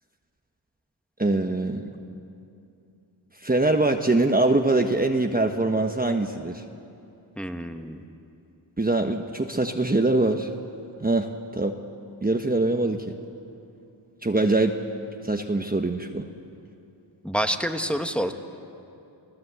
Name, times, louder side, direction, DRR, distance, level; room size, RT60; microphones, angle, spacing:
voice 1, 1.2-1.9 3.4-6.6 8.8-10.5 11.0-11.3 11.5-11.8 12.2-13.2 14.2-14.8 15.2-16.3, right 2 dB, 20° right, 4 dB, 1.2 m, -23 dB
voice 2, 7.4-8.0 17.2-18.3, equal, ahead, 5 dB, 1.5 m, -27 dB
29.0 x 17.5 x 8.2 m, 2.7 s
cardioid pair, 70°, 46 cm